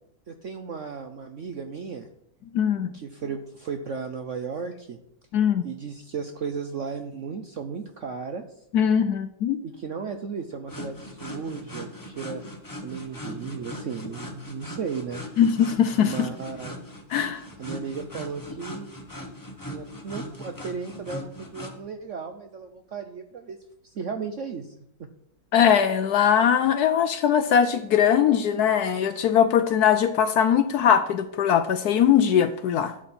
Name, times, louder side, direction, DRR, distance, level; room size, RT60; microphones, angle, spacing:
voice 1, 0.3-2.1 2.9-5.0 5.6-8.4 9.6-12.4 12.8-15.2 16.0-16.8 17.6-18.9 19.7-23.6 23.9-24.7 25.0-25.1, right 5 dB, 65° right, 6 dB, 0.8 m, -35 dB
voice 2, 2.5-2.9 5.3-5.7 8.7-9.6 15.4-16.3 17.1-17.4 25.5-32.9, left 8 dB, 70° left, 10 dB, 1.0 m, -21 dB
sound 1, 10.7-21.8, left 1 dB, 15° left, 0.9 m, -39 dB
12.0 x 7.4 x 4.3 m, 0.74 s
omnidirectional pair, 2.0 m